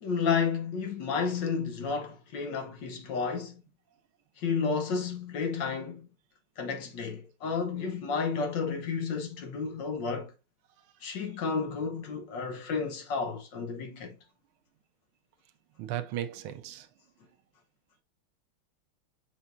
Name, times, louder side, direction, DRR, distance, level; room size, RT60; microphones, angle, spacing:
voice 1, 0.0-3.6 4.4-6.1 6.6-10.3 11.0-14.1, left 5 dB, 60° left, 1.4 m, -31 dB
voice 2, 15.8-16.9, right 12 dB, 80° right, 1.5 m, -36 dB
7.1 x 5.2 x 2.5 m
omnidirectional pair, 2.4 m